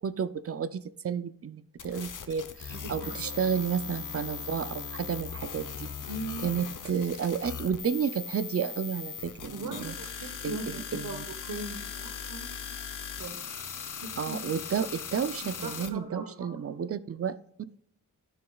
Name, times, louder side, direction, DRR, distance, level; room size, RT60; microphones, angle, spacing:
voice 1, 0.0-5.9 6.4-9.9 10.2-11.2 14.2-17.3, right 7 dB, 45° right, 15 dB, 0.5 m, -32 dB
sound 1, 1.8-15.9, left 7 dB, 70° left, 0.9 m, -39 dB
voice 2, 2.7-3.4 6.1-6.5 9.5-12.7 13.2-13.4 14.0-14.4 15.1-15.2 15.6-16.5, right 2 dB, 75° right, 5 dB, 1.1 m, -40 dB
12.5 x 6.9 x 2.4 m, 0.67 s
wide cardioid pair, 75°, 33 cm